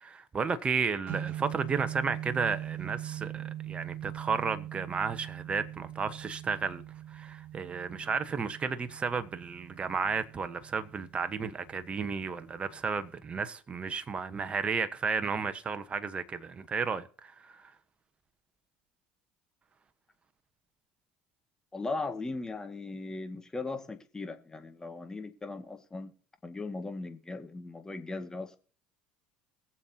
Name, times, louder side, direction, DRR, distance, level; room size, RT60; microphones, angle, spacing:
voice 1, 0.0-6.8 7.1-17.7, right 5 dB, 30° right, 1.3 m, -33 dB
sound 1, 1.1-13.1, right 12 dB, 55° right, 3.5 m, -42 dB
voice 2, 21.7-26.1 26.4-28.6, left 3 dB, 15° left, 2.1 m, -38 dB
22.0 x 7.4 x 2.9 m
hypercardioid pair, 75°, 4 cm